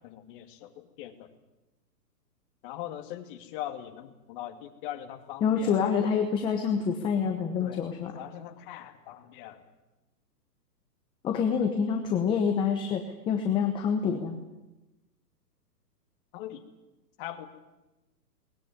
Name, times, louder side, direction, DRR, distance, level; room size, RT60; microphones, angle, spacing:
voice 1, 0.0-1.3 2.6-5.9 7.6-7.8 8.1-9.7 11.4-11.5 16.3-16.6 17.2-17.5, left 12 dB, 30° left, 6 dB, 2.3 m, -41 dB
voice 2, 5.4-8.1 11.2-14.4, left 6 dB, 10° left, 4 dB, 0.9 m, -27 dB
21.0 x 20.0 x 9.6 m, 1.0 s
hypercardioid pair, 155°, 50 cm